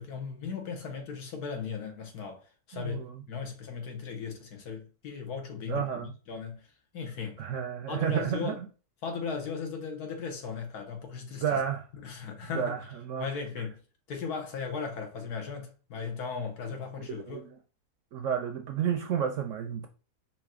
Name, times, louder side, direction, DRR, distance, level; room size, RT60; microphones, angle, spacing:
voice 1, 0.0-6.7 6.9-7.4 7.9-8.6 9.0-11.6 12.0-12.9 13.2-13.8 14.1-17.5, left 5 dB, 75° left, 1.5 m, -37 dB
voice 2, 2.7-3.2 5.7-6.1 7.4-8.6 11.4-11.9 12.5-12.8 13.0-13.3 17.1-17.5 18.1-19.9, right 8 dB, 70° right, 0.8 m, -31 dB
5.0 x 2.8 x 3.6 m
omnidirectional pair, 1.7 m